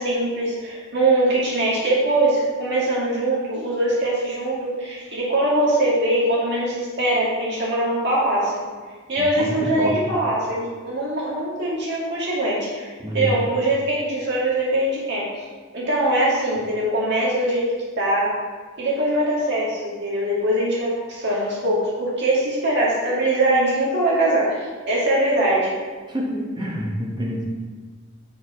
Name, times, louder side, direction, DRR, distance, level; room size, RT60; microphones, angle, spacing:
voice 1, 0.0-8.6 9.1-15.3 15.7-18.4 18.8-24.6 24.9-25.8, right 1 dB, 50° right, -6 dB, 2.0 m, -22 dB
voice 2, 9.2-10.0 13.0-13.4 26.1-27.4, equal, 20° right, -3 dB, 1.1 m, -27 dB
6.6 x 4.8 x 4.3 m, 1.5 s
head